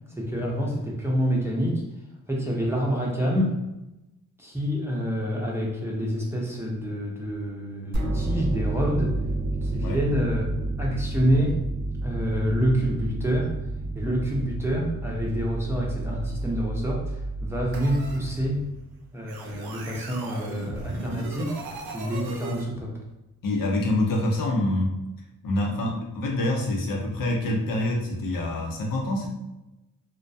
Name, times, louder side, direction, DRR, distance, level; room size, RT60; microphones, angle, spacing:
voice 1, 0.2-1.8 2.3-3.6 4.4-9.1 9.6-10.5 10.8-11.6 12.0-13.5 13.9-18.6 19.1-21.6 21.9-22.9, equal, 5° right, -3 dB, 0.7 m, -27 dB
sound 1, 7.9-18.9, right 2 dB, 45° right, 0.8 m, -30 dB
sound 2, 17.7-18.2 19.3-22.6, right 3 dB, 85° right, 0.5 m, -37 dB
voice 2, 23.4-24.9 25.4-29.3, left 1 dB, 65° left, -1 dB, 0.7 m, -26 dB
2.2 x 2.1 x 2.6 m, 0.95 s
supercardioid pair, 55°, 36 cm